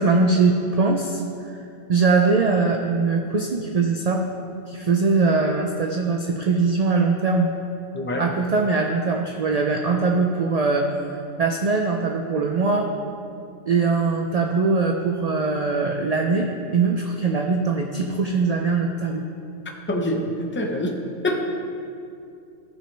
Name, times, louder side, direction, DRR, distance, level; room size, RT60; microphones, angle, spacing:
voice 1, 0.0-1.6 1.9-4.3 4.7-7.5 8.2-11.0 11.4-12.9 13.7-19.3, right 4 dB, 60° right, 3 dB, 0.4 m, -21 dB
voice 2, 19.9-21.0 21.2-21.4, left 1 dB, 15° left, 2 dB, 0.5 m, -25 dB
13.5 x 6.1 x 3.3 m, 2.5 s
omnidirectional pair, 1.3 m